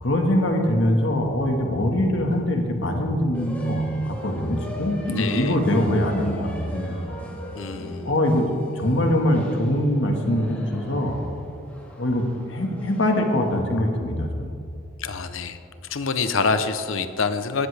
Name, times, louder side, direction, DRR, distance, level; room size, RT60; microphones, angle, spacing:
voice 1, 0.0-7.2 8.0-8.5 8.8-11.2 11.9-12.2 12.5-14.5, left 1 dB, 65° left, 3 dB, 1.7 m, -23 dB
sound 1, 3.3-13.5, right 1 dB, 10° left, 2.1 m, -36 dB
voice 2, 5.1-5.5 7.5-8.1 15.0-15.6 15.9-17.7, left 4 dB, 90° left, 10 dB, 0.8 m, -26 dB
18.0 x 13.5 x 3.4 m, 2.4 s
head